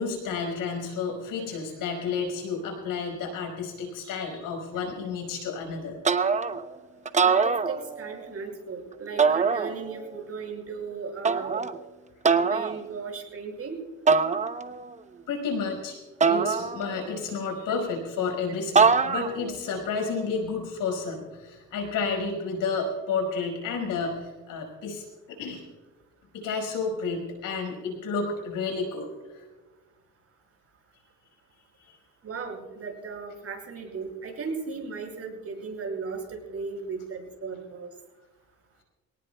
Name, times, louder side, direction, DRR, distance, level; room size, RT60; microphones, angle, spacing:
voice 1, 0.0-6.0 15.3-16.0 16.3-25.6 26.3-29.4 31.8-31.9, left 4 dB, 85° left, 3 dB, 5.3 m, -31 dB
sound 1, 6.0-6.7 7.1-8.2 9.2-10.1 11.2-11.8 12.2-12.8 14.1-14.9 16.2-17.2 18.8-19.5, right 5 dB, 20° right, 0.8 m, -23 dB
voice 2, 7.2-11.6 12.4-13.7 32.2-37.9, right 5 dB, 45° right, 1 dB, 6.0 m, -36 dB
24.0 x 18.5 x 2.3 m, 1.3 s
cardioid pair, 110°, 32 cm